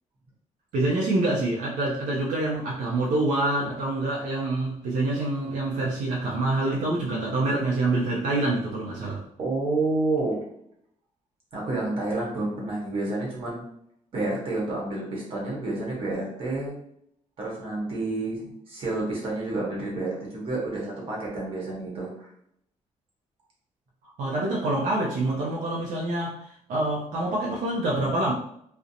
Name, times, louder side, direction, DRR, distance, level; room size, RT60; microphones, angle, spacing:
voice 1, 0.7-9.2 24.2-28.3, right 2 dB, 80° right, -3 dB, 0.4 m, -26 dB
voice 2, 9.4-10.4 11.5-13.6 14.1-16.7 17.4-22.3, right 2 dB, 45° right, -4 dB, 0.9 m, -29 dB
2.4 x 2.0 x 2.7 m, 0.72 s
cardioid pair, 165°, 13 cm